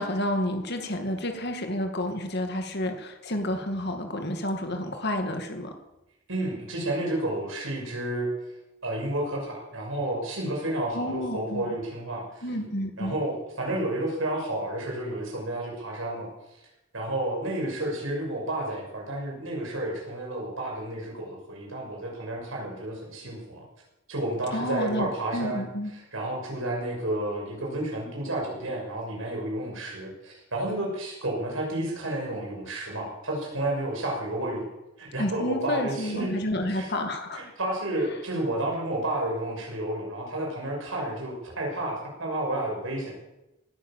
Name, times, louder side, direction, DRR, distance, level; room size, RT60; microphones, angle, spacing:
voice 1, 0.0-5.7 10.9-11.8 12.4-13.2 24.5-25.9 35.2-37.4, left 1 dB, 50° left, 5 dB, 2.3 m, -30 dB
voice 2, 6.3-8.3 8.8-12.5 13.0-16.3 16.9-23.7 24.1-25.6 25.9-34.7 35.0-36.3 36.7-37.1 37.3-43.2, right 1 dB, 70° right, 0 dB, 6.2 m, -31 dB
18.5 x 10.0 x 7.4 m, 0.95 s
head